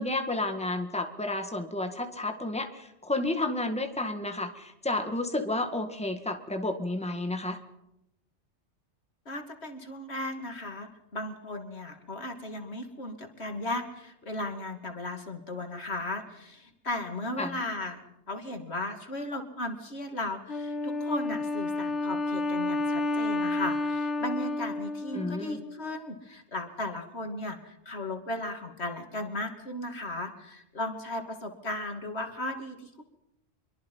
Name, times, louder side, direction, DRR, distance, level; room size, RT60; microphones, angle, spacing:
voice 1, 0.0-7.6 17.4-17.6 25.1-25.6, left 2 dB, 5° left, 6 dB, 1.9 m, -31 dB
voice 2, 9.3-33.0, left 1 dB, 65° left, 5 dB, 3.0 m, -36 dB
Wind instrument woodwind instrument, 20.5-25.9, left 2 dB, 90° left, 1.9 m, -31 dB
25.5 x 23.5 x 5.6 m, 0.85 s
omnidirectional pair, 1.2 m